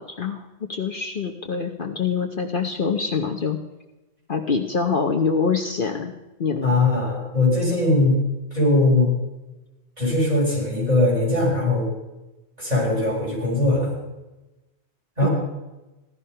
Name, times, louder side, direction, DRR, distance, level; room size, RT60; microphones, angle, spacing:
voice 1, 0.0-3.6 4.3-6.1 6.4-6.8 15.2-15.3, left 5 dB, 50° left, 3 dB, 1.0 m, -25 dB
voice 2, 6.6-8.2 8.5-9.1 10.0-11.9 12.6-13.9 15.2-15.3, left 2 dB, 35° right, -4 dB, 7.1 m, -20 dB
16.0 x 12.5 x 5.6 m, 1.0 s
omnidirectional pair, 1.2 m